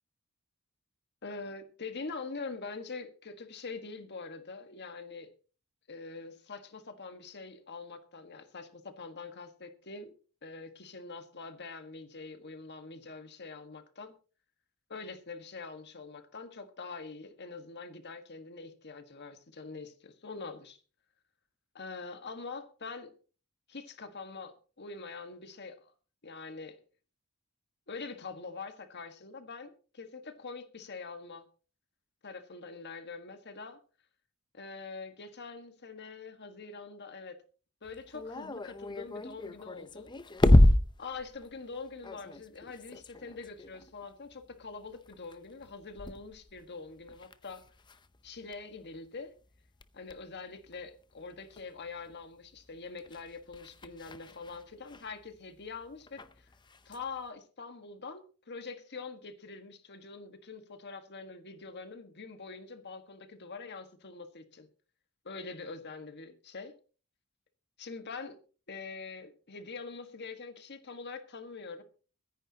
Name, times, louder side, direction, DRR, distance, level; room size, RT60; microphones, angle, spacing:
voice 1, 1.2-5.3 5.9-10.1 10.4-14.1 14.9-20.8 21.7-23.1 23.7-25.9 26.2-26.8 27.9-31.5 32.2-33.8 34.5-37.4 37.8-40.1 41.0-47.6 48.2-49.3 49.9-56.5 56.8-64.7 65.2-66.8 67.8-68.4 68.7-71.8, left 4 dB, 50° left, 1.5 m, -44 dB
sound 1, 37.8-49.0 49.4-52.1 52.4-57.2, left 1 dB, 20° left, 0.6 m, -31 dB
23.0 x 10.0 x 2.9 m
head